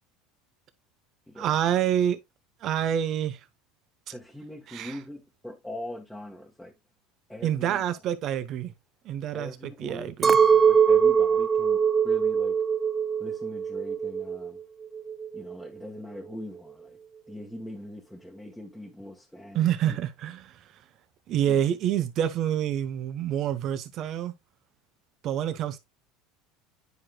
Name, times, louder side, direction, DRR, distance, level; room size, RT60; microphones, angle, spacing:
voice 1, 1.4-2.2 2.6-3.4 4.7-5.0 7.4-8.7 9.0-10.4 19.5-20.6 21.3-24.3 25.2-25.8, right 10 dB, 50° right, 1.0 m, -27 dB
voice 2, 4.1-6.7 7.3-7.8 9.3-12.6 13.2-14.6 15.3-17.0 17.3-20.0 21.5-21.7, left 1 dB, ahead, 1.3 m, -42 dB
Chink clink, 10.2-14.6 14.8-15.7, right 7 dB, 25° right, 0.4 m, -22 dB
9.6 x 5.0 x 2.3 m
supercardioid pair, 105°, 0 cm